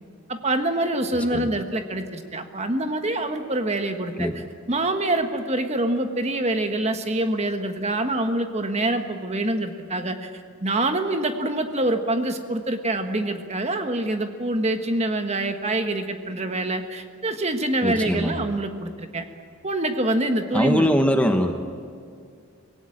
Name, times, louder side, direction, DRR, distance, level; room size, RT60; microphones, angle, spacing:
voice 1, 0.3-4.3 4.7-10.3 10.6-19.2 19.6-20.9, right 1 dB, 30° right, 6 dB, 1.4 m, -25 dB
voice 2, 17.8-18.4 20.5-21.5, equal, 5° left, 5 dB, 1.0 m, -22 dB
25.0 x 18.0 x 8.7 m, 2.2 s
head